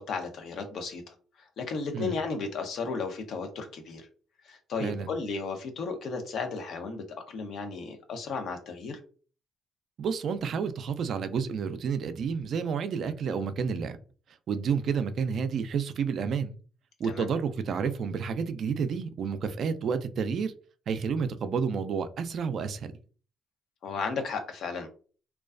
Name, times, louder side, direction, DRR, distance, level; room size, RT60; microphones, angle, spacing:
voice 1, 0.0-4.1 4.4-9.0 17.0-17.3 23.8-24.9, left 4 dB, 70° left, 0.6 m, -34 dB
voice 2, 10.0-14.0 14.5-16.5 17.0-20.5 20.9-22.9, right 6 dB, 65° right, 0.3 m, -30 dB
2.3 x 2.2 x 2.4 m
supercardioid pair, 65°, 0 cm